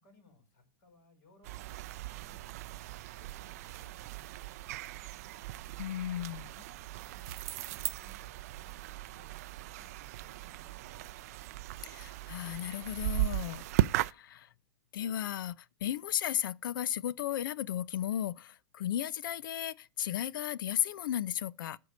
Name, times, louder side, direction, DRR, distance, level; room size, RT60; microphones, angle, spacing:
voice 1, 0.0-5.2 7.0-11.5, left 3 dB, 35° left, 5.4 m, -65 dB
sound 1, 1.4-14.1, right 16 dB, 45° right, 0.4 m, -37 dB
voice 2, 5.8-6.6 11.8-14.5 14.9-21.8, left 11 dB, 70° left, 0.7 m, -35 dB
sound 2, 7.3-8.5, right 11 dB, 90° right, 0.7 m, -50 dB
13.5 x 4.7 x 6.4 m
supercardioid pair, 175°, 12 cm